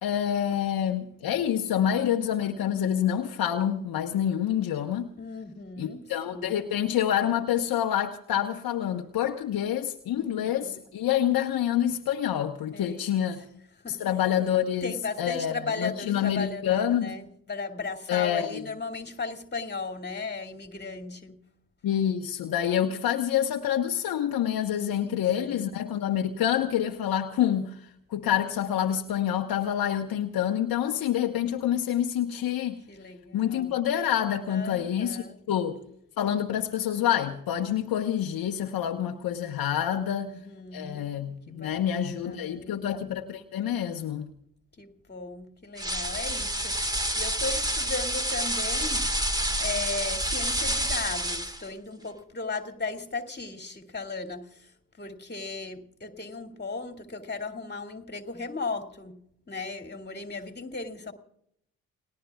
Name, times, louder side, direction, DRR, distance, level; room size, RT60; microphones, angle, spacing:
voice 1, 0.0-5.1 5.8-13.4 13.9-17.1 18.1-18.6 21.8-27.8 28.1-32.8 33.3-35.8 36.2-40.3 40.7-44.3, left 10 dB, 55° left, 4 dB, 1.3 m, -27 dB
voice 2, 5.2-6.5 10.2-10.8 12.7-13.2 13.8-14.0 14.8-21.4 24.7-25.7 32.9-33.7 34.5-35.4 39.9-41.0 41.5-42.8 44.8-49.1 49.6-54.7 55.0-59.2 59.5-61.1, left 4 dB, 25° left, 5 dB, 2.5 m, -36 dB
sound 1, 45.8-51.7, right 1 dB, 10° right, 1.9 m, -28 dB
29.5 x 20.0 x 2.4 m, 0.73 s
hypercardioid pair, 45°, 42 cm